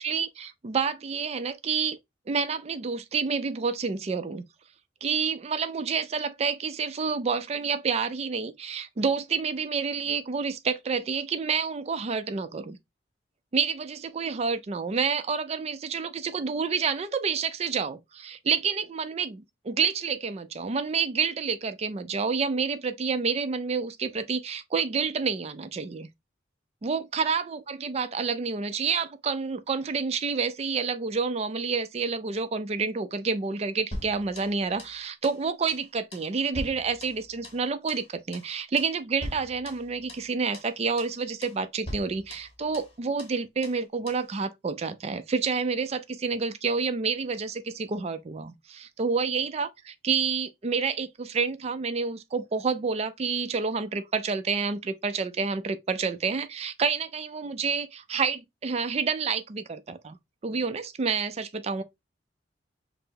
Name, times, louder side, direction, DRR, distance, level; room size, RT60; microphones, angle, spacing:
voice 1, 0.0-2.0 2.3-4.4 5.0-12.8 13.5-26.1 26.8-49.7 50.0-60.2 60.4-61.8, right 5 dB, 35° right, 0.4 m, -29 dB
sound 1, 33.9-35.0 35.2-35.4 35.7-35.9 36.1-37.6 37.9-38.1 38.3-38.5 38.8-39.0 39.2-40.3 40.5-40.7 41.0-41.2 41.4-41.6 41.9-42.9 43.2-43.4 43.6-43.8 44.1-44.3, left 1 dB, 30° left, 1.3 m, -41 dB
5.6 x 2.0 x 2.7 m
head